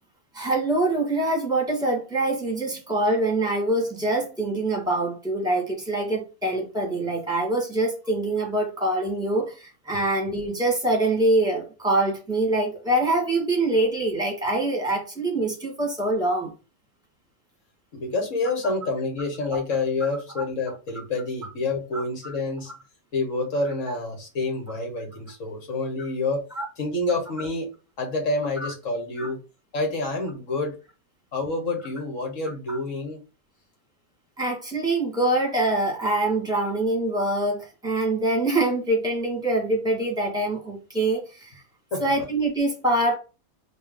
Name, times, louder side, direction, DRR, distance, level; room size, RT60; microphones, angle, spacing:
voice 1, 0.3-16.5 21.9-22.3 24.7-24.8 26.6-26.7 28.6-28.7 29.2-29.3 32.7-32.8 34.4-41.5 42.0-43.2, right 2 dB, 5° right, -1 dB, 1.7 m, -24 dB
voice 2, 17.9-22.7 23.1-26.4 26.8-27.7 28.0-29.4 29.7-30.7 31.3-33.2 41.9-42.0, left 2 dB, 65° left, 2 dB, 1.7 m, -28 dB
4.3 x 2.9 x 3.7 m, 0.31 s
omnidirectional pair, 1.5 m